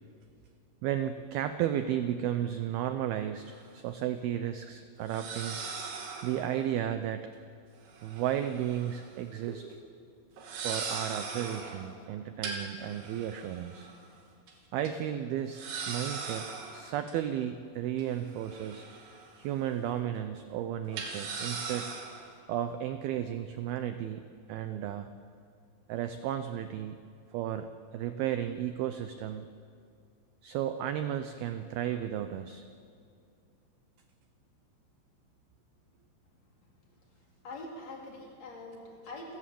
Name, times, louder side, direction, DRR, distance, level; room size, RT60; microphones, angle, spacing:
voice 1, 0.8-5.6 6.2-7.3 8.0-9.7 10.6-13.9 14.7-18.9 19.4-21.9 22.5-25.1 25.9-27.0 27.3-29.5 30.4-32.6, right 10 dB, 90° right, 9 dB, 2.1 m, -34 dB
sound 1, 3.5-3.6 5.1-6.5 7.9-9.1 9.3-9.6 10.4-11.8 12.4-14.1 14.5-14.6 14.9-15.0 15.5-17.1 18.0-19.4 19.7-19.9 20.9-22.2, right 4 dB, 70° right, 4.9 m, -39 dB
voice 2, 37.4-39.4, left 2 dB, 35° left, -1 dB, 4.6 m, -44 dB
28.5 x 17.0 x 7.7 m, 2.3 s
omnidirectional pair, 5.4 m